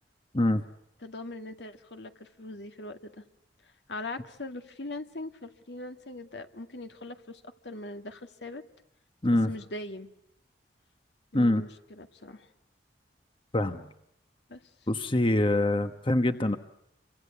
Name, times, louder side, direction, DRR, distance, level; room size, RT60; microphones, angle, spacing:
voice 1, 1.0-3.2 3.6-8.6 9.3-10.1 11.3-12.5 14.5-14.6, left 2 dB, 70° left, 7 dB, 2.0 m, -41 dB
voice 2, 14.9-16.6, left 1 dB, 30° left, 9 dB, 1.1 m, -24 dB
28.5 x 25.0 x 8.3 m, 0.76 s
head